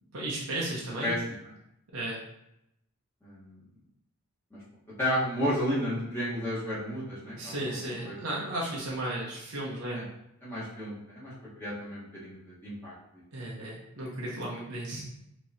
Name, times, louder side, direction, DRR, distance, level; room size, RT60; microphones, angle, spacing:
voice 1, 0.1-1.1 1.9-2.2 7.3-10.0 13.3-15.0, right 1 dB, 75° right, -4 dB, 0.9 m, -34 dB
voice 2, 3.2-3.6 4.5-4.6 5.0-7.6 8.0-8.2 9.9-10.0 10.4-12.9, equal, 10° left, -10 dB, 1.2 m, -32 dB
4.5 x 3.0 x 2.7 m, 0.82 s
head